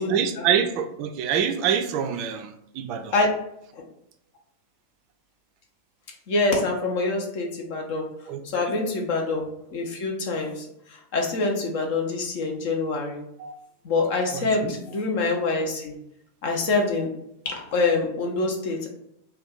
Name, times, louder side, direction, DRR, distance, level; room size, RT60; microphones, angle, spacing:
voice 1, 0.0-3.1 8.3-8.8 13.4-13.5 14.3-14.8, right 8 dB, 40° right, 7 dB, 0.3 m, -26 dB
voice 2, 6.3-8.1 8.5-13.2 13.8-15.9 16.4-17.1 17.4-18.9, left 3 dB, 50° left, 1 dB, 0.7 m, -25 dB
2.5 x 2.3 x 3.7 m, 0.77 s
figure-of-eight pair, 90°, 0 cm